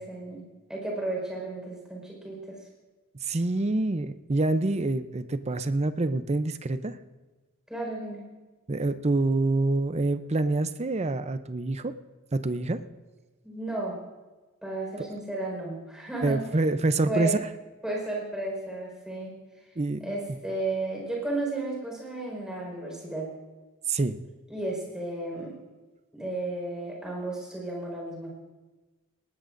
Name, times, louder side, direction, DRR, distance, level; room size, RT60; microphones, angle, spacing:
voice 1, 0.0-2.6 7.7-8.2 13.4-14.0 14.6-16.5 17.0-17.4 17.8-19.4 20.0-23.3 24.5-25.6 26.1-28.3, right 2 dB, 5° right, -3 dB, 4.7 m, -33 dB
voice 2, 3.2-7.0 8.7-11.9 12.3-12.8 16.2-17.4 19.8-20.1 23.9-24.2, right 2 dB, 30° right, 11 dB, 0.6 m, -26 dB
19.0 x 19.0 x 2.6 m, 1.2 s
head